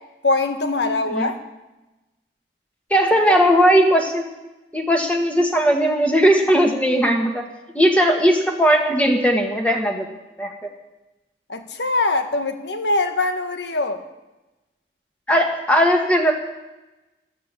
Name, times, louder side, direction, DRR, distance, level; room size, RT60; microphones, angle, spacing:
voice 1, 0.2-1.4 3.3-3.4 11.5-14.0, left 2 dB, 80° left, 7 dB, 1.6 m, -22 dB
voice 2, 2.9-4.3 4.7-7.4 7.7-10.1 10.4-10.5 15.3-16.3, equal, 5° left, 2 dB, 1.5 m, -18 dB
14.5 x 13.0 x 6.8 m, 1.0 s
head